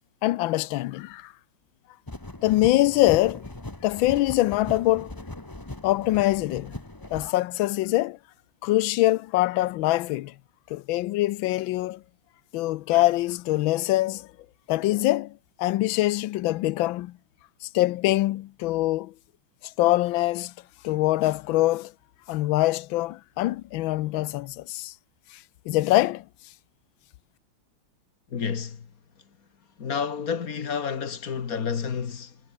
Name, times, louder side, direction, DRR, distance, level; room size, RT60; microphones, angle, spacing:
voice 1, 0.2-1.3 2.4-3.5 3.8-5.1 5.8-6.7 7.1-8.2 8.6-10.3 10.7-12.0 12.5-14.3 14.7-17.2 17.6-19.1 19.8-20.5 20.8-21.9 22.3-24.9 25.3-26.2, left 17 dB, 75° left, 1.4 m, -24 dB
sound 1, 2.1-7.3, left 2 dB, 10° left, 1.6 m, -39 dB
voice 2, 28.3-28.9 29.8-32.4, left 6 dB, 45° left, 1.8 m, -30 dB
omnidirectional pair, 2.3 m